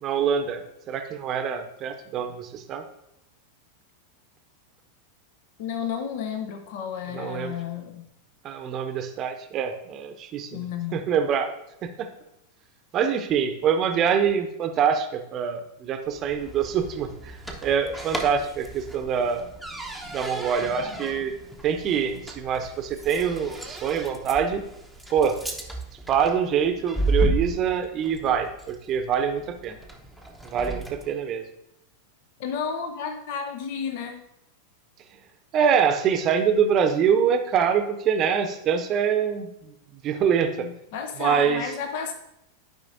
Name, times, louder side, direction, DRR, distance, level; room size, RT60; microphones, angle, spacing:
voice 1, 0.0-2.8 7.1-7.6 8.4-11.5 11.8-12.1 12.9-19.5 20.0-21.3 21.6-24.6 25.1-25.4 26.1-29.8 30.4-31.4 35.5-40.7 41.2-41.7, right 7 dB, 30° right, 7 dB, 0.8 m, -25 dB
voice 2, 5.6-8.0 10.5-11.1 32.4-34.2 40.6-42.1, left 7 dB, 50° left, 6 dB, 0.7 m, -32 dB
sound 1, 16.1-31.2, right 2 dB, ahead, 0.9 m, -34 dB
12.0 x 5.2 x 2.6 m, 0.83 s
figure-of-eight pair, 90°, 0 cm